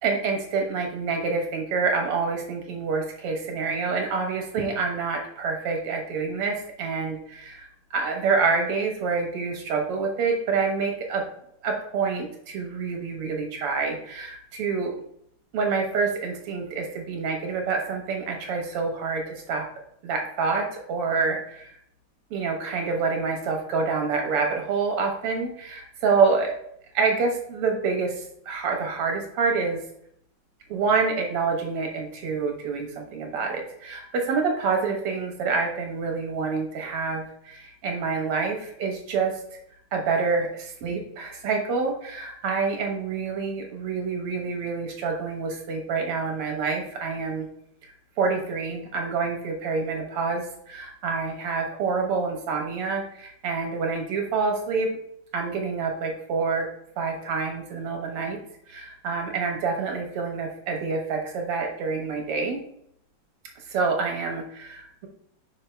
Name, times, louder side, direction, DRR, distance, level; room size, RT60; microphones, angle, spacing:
voice 1, 0.0-11.2 11.6-15.0 15.5-19.6 20.0-21.8 22.3-26.5 26.9-29.8 30.7-39.3 39.9-47.5 47.8-54.9 55.3-56.7 57.0-58.4 58.7-62.6 63.7-65.1, right 4 dB, 90° right, 2 dB, 2.2 m, -27 dB
5.6 x 5.1 x 3.4 m, 0.70 s
omnidirectional pair, 2.4 m